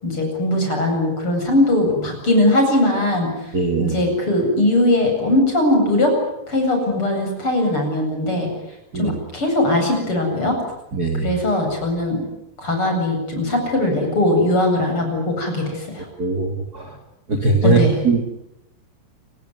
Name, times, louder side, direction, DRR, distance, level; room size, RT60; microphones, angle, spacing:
voice 1, 0.0-3.5 3.8-6.1 6.5-8.5 8.9-10.6 11.1-12.2 12.6-16.1 17.6-18.0, left 1 dB, 30° left, 3 dB, 8.9 m, -20 dB
voice 2, 3.5-3.9 8.9-9.1 10.9-11.3 16.2-16.9 17.3-18.2, right 3 dB, 30° right, 5 dB, 2.4 m, -20 dB
29.5 x 19.5 x 9.8 m, 0.87 s
omnidirectional pair, 4.6 m